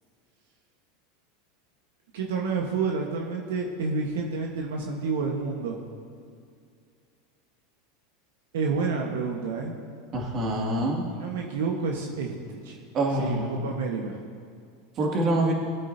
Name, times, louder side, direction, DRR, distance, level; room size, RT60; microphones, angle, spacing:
voice 1, 2.1-5.8 8.5-9.7 11.1-12.8 13.2-14.2, right 4 dB, 80° right, 0 dB, 1.4 m, -29 dB
voice 2, 10.1-11.0 12.9-13.6 15.0-15.5, right 1 dB, 40° right, -1 dB, 2.4 m, -25 dB
20.5 x 8.3 x 2.8 m, 2.3 s
supercardioid pair, 110°, 0 cm